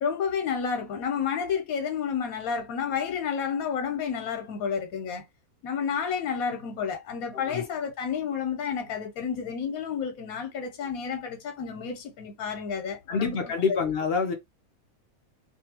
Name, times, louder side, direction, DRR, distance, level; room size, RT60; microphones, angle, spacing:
voice 1, 0.0-5.2 5.6-13.4 13.7-13.8, left 7 dB, 85° left, 1.1 m, -30 dB
voice 2, 7.3-7.7 13.1-14.3, left 5 dB, 65° left, 0.6 m, -27 dB
2.6 x 2.5 x 2.8 m
omnidirectional pair, 1.5 m